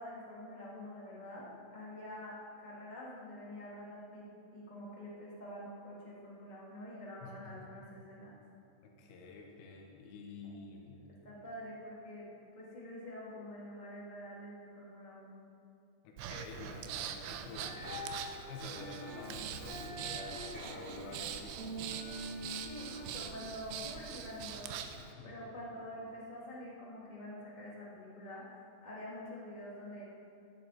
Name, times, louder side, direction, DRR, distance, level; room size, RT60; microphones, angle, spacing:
voice 1, 0.0-8.4 10.4-10.5 11.2-12.3 12.5-15.4 22.6-30.0, left 1 dB, 45° left, -7 dB, 0.5 m, -47 dB
voice 2, 7.2-7.7 8.8-11.0 16.0-18.1 18.5-21.7 25.0-25.4, left 3 dB, 85° left, 1 dB, 4.0 m, -49 dB
Breathing, 16.2-25.0, right 9 dB, 85° right, 2.6 m, -43 dB
sound 1, 17.6-23.2, equal, 40° right, 4.3 m, -45 dB
sound 2, 19.1-26.1, right 1 dB, 55° right, 1.5 m, -60 dB
17.0 x 11.5 x 4.2 m, 2.6 s
omnidirectional pair, 5.7 m